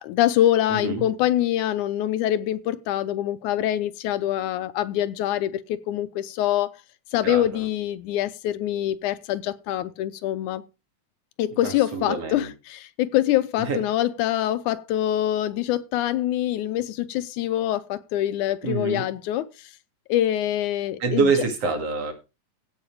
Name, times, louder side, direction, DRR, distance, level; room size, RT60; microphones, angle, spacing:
voice 1, 0.0-6.8 7.1-10.6 11.4-19.7 20.1-21.3, left 12 dB, 80° left, 2.2 m, -25 dB
voice 2, 0.7-1.1 7.2-7.6 11.6-12.5 13.7-13.8 18.6-19.0 21.0-22.1, right 4 dB, 50° right, 3.6 m, -26 dB
16.0 x 5.8 x 4.8 m
omnidirectional pair, 3.5 m